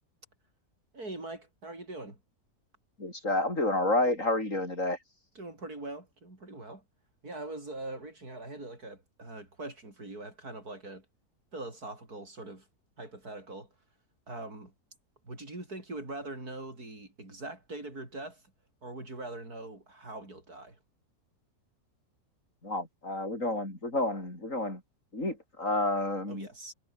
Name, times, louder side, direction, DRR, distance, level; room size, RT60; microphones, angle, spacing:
voice 1, 0.9-2.2 5.4-6.8 7.2-11.1 11.5-12.7 13.0-13.7 14.3-14.7 15.3-18.4 18.8-20.8 26.3-26.7, right 2 dB, 75° right, 7.5 m, -42 dB
voice 2, 3.0-5.0 22.6-24.8 25.1-26.5, left 2 dB, 55° left, 8.0 m, -30 dB
omnidirectional pair, 1.6 m